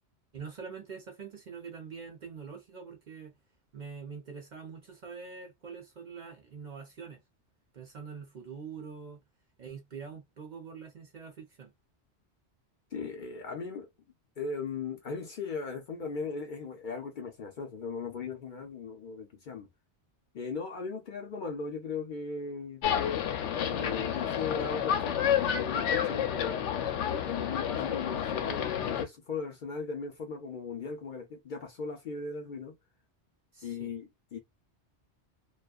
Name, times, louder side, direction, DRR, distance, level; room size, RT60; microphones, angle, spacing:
voice 1, 0.3-3.3 3.7-7.2 7.7-9.2 9.6-11.7 33.5-33.9, right 6 dB, 50° right, 0.6 m, -44 dB
voice 2, 12.9-13.9 14.4-19.7 20.3-22.8 23.6-26.8 27.2-32.7 33.6-34.4, left 5 dB, 55° left, 0.6 m, -38 dB
sound 1, 22.8-29.0, left 9 dB, 90° left, 0.9 m, -30 dB
2.5 x 2.3 x 2.2 m
omnidirectional pair, 1.2 m